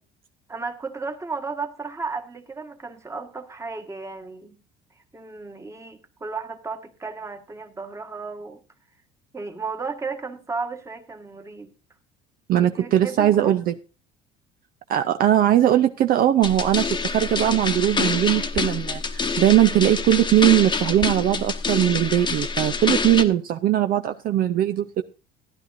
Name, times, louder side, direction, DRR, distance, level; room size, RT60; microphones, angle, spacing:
voice 1, 0.5-4.6 4.9-8.6 9.3-11.7 12.6-13.5, right 4 dB, 15° right, 1.5 m, -34 dB
voice 2, 12.5-13.7 14.9-25.0, right 12 dB, 50° right, 0.6 m, -20 dB
sound 1, 16.4-23.2, left 4 dB, 25° left, 1.1 m, -26 dB
15.5 x 11.0 x 2.6 m
cardioid pair, 110°, 18 cm